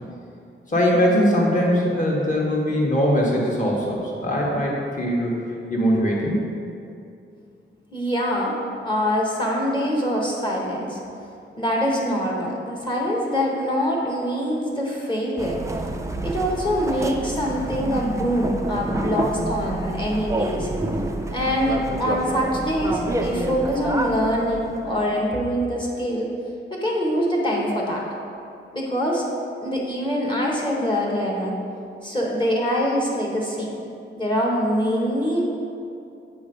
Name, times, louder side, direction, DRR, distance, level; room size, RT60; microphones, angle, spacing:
voice 1, 0.7-5.3 5.7-6.4, equal, 40° left, -3 dB, 1.4 m, -21 dB
voice 2, 7.9-8.5 8.8-11.0 11.6-15.6 16.2-20.7 21.3-26.3 26.7-28.0 28.7-29.2 29.6-31.5 32.0-33.8 34.2-35.5, equal, 20° left, -3 dB, 1.0 m, -24 dB
sound 1, 15.4-25.2, right 2 dB, 15° right, 0.4 m, -28 dB
7.6 x 3.1 x 5.2 m, 2.6 s
wide cardioid pair, 110°, 21 cm